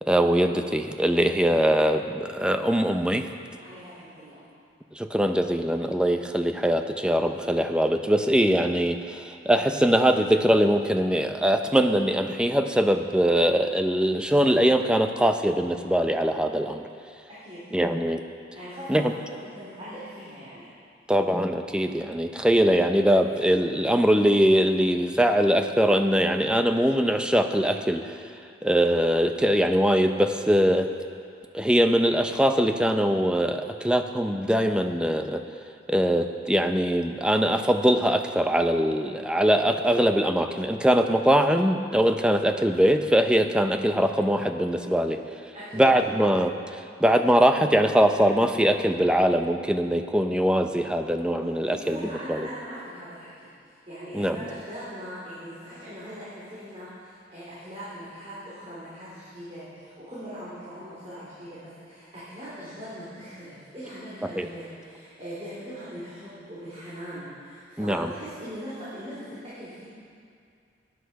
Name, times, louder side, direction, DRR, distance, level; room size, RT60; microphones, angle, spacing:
voice 1, 0.0-3.3 4.9-16.9 17.7-18.2 18.9-19.1 21.1-28.3 28.6-30.9 31.5-35.4 35.9-45.2 45.7-52.5 54.1-54.4 64.2-64.5 67.8-68.1, equal, 5° right, 6 dB, 0.6 m, -22 dB
voice 2, 3.6-4.4 17.3-17.6 18.5-19.0 19.3-20.7 45.5-45.9 51.4-53.3 53.6-69.8, equal, 35° right, -12 dB, 4.1 m, -40 dB
18.0 x 10.5 x 4.7 m, 2.3 s
head